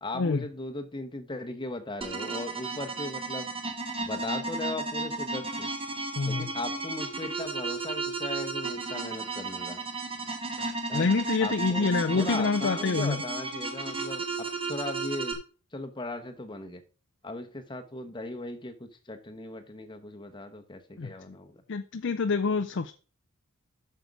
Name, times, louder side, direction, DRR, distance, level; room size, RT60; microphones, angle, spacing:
voice 1, 0.0-3.5 4.0-5.7 6.2-9.8 10.9-11.1 11.4-15.4 15.7-16.8 17.2-21.6, left 2 dB, 20° left, 1.0 m, -38 dB
sound 1, 2.0-15.3, right 3 dB, 25° right, 1.4 m, -34 dB
voice 2, 6.2-6.5 10.9-13.2 21.0-21.1 21.7-22.9, left 4 dB, 55° left, 0.5 m, -26 dB
8.0 x 6.6 x 4.7 m
head